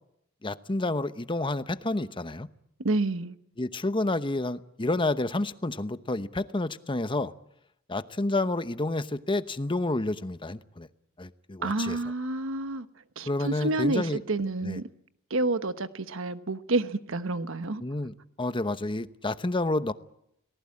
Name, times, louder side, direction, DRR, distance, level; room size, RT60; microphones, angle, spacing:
voice 1, 0.4-2.5 3.6-7.3 7.9-10.9 11.2-12.0 13.3-14.2 14.6-14.8 17.8-19.9, left 2 dB, 25° left, 0.9 m, -29 dB
voice 2, 2.8-3.4 11.6-12.9 13.2-14.9 15.3-17.8, right 2 dB, 70° right, 1.2 m, -29 dB
29.5 x 19.0 x 8.6 m
head